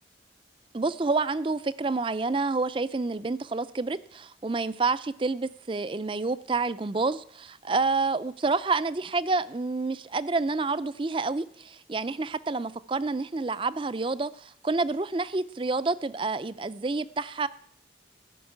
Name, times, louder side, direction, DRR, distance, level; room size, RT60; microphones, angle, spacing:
voice 1, 0.7-17.5, right 3 dB, 30° right, 16 dB, 0.4 m, -28 dB
14.0 x 6.4 x 9.5 m, 0.65 s
head